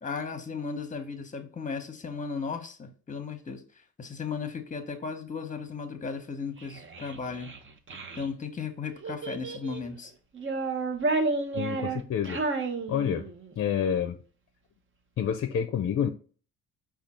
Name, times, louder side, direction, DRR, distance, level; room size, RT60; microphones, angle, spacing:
voice 1, 0.0-3.6 4.0-7.5 8.1-10.1, left 5 dB, 25° left, 1.0 m, -35 dB
Child speech kid speaking, 6.6-8.3 9.0-9.9 10.3-13.5, right 3 dB, 40° right, 0.9 m, -31 dB
voice 2, 11.5-12.4 12.9-13.3 13.6-14.2 15.2-16.1, left 8 dB, 50° left, 0.5 m, -28 dB
5.0 x 2.4 x 4.3 m
cardioid pair, 90°, 30 cm